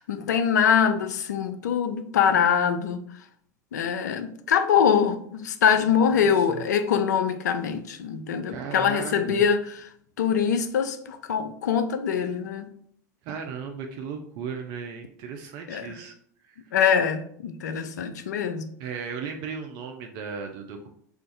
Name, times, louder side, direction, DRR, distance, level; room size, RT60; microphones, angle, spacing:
voice 1, 0.0-3.0 3.7-9.9 10.2-12.7 15.7-16.0 16.7-18.7, left 7 dB, 80° left, 0.3 m, -23 dB
voice 2, 5.9-6.6 8.5-9.4 13.2-16.1 16.5-16.6 18.8-20.9, right 6 dB, 50° right, 0.4 m, -36 dB
2.5 x 2.3 x 3.9 m
hypercardioid pair, 90°, 9 cm